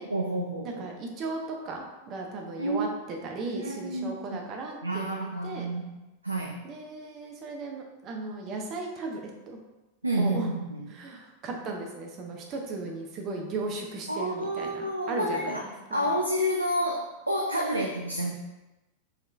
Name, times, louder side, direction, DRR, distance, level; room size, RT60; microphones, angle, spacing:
voice 1, 0.1-0.9 2.6-2.9 3.5-4.4 4.8-5.9 6.2-6.7 10.0-10.9 14.1-18.3, equal, 85° right, 0 dB, 0.3 m, -30 dB
voice 2, 0.6-5.7 6.6-9.2 9.5-9.6 10.2-10.5 10.9-16.2 17.7-17.9, right 3 dB, 35° right, 1 dB, 0.7 m, -36 dB
4.1 x 3.1 x 2.6 m, 1.0 s
figure-of-eight pair, 90°, 0 cm